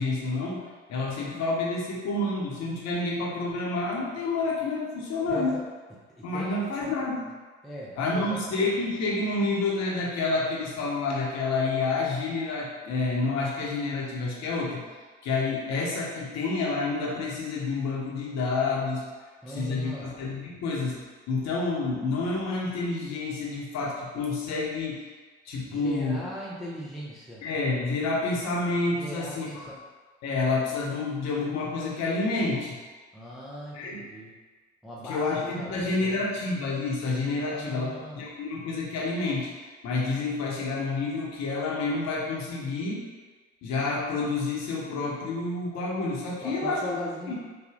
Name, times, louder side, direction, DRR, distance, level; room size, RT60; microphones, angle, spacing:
voice 1, 0.0-5.6 6.2-7.3 8.0-14.8 15.2-19.0 19.5-21.0 21.3-25.0 25.4-26.2 27.4-29.6 30.2-32.8 33.7-34.1 35.0-43.0 43.6-47.0 47.3-47.4, left 3 dB, 45° left, -4 dB, 1.0 m, -29 dB
voice 2, 5.3-5.6 6.2-6.6 7.6-8.5 19.4-20.1 25.7-27.4 29.0-29.8 33.1-34.4 34.8-36.2 37.4-38.2 46.4-47.3, equal, ahead, -5 dB, 0.4 m, -39 dB
3.4 x 2.2 x 3.6 m, 1.4 s
figure-of-eight pair, 65°, 38 cm